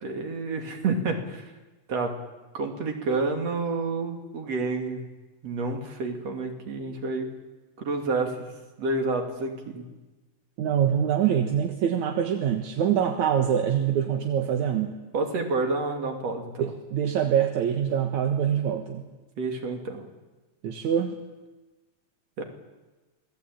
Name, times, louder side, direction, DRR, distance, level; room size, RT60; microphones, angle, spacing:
voice 1, 0.0-1.5 1.9-2.2 2.5-5.1 5.4-7.3 7.8-8.5 8.8-9.9 15.1-16.7 19.4-20.1 22.4-22.5, right 3 dB, 60° right, 3 dB, 3.8 m, -29 dB
voice 2, 10.6-15.0 16.6-19.0 20.6-21.2, right 9 dB, 75° right, 4 dB, 2.8 m, -24 dB
27.5 x 19.0 x 8.9 m, 1.2 s
omnidirectional pair, 3.3 m